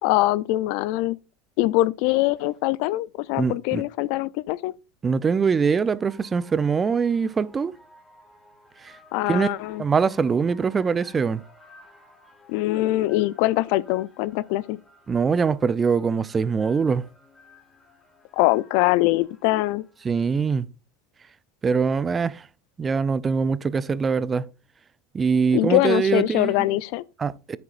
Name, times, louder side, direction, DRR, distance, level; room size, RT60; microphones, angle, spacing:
voice 1, 0.0-1.2 1.6-4.7 9.1-9.8 12.5-14.8 18.3-19.8 25.5-27.0, left 17 dB, 65° left, 0.4 m, -23 dB
voice 2, 3.4-3.8 5.0-7.7 8.8-8.9 9.3-9.5 9.8-11.4 15.1-17.0 20.0-20.7 21.6-22.5 22.8-24.5 25.1-26.7 27.2-27.6, right 5 dB, 25° right, 0.5 m, -23 dB
sound 1, 4.8-20.4, left 1 dB, 15° left, 3.0 m, -55 dB
9.6 x 7.5 x 2.5 m
hypercardioid pair, 95°, 0 cm